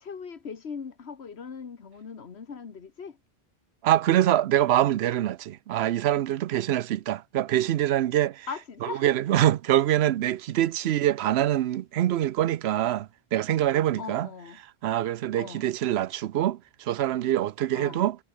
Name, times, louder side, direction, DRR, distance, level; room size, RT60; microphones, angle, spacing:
voice 1, 0.0-3.2 8.5-9.1 14.0-14.6 15.4-15.6 17.8-18.0, left 6 dB, 85° left, 1.7 m, -39 dB
voice 2, 3.8-8.5 8.8-14.3 14.8-18.2, right 12 dB, 80° right, 0.9 m, -24 dB
omnidirectional pair, 1.1 m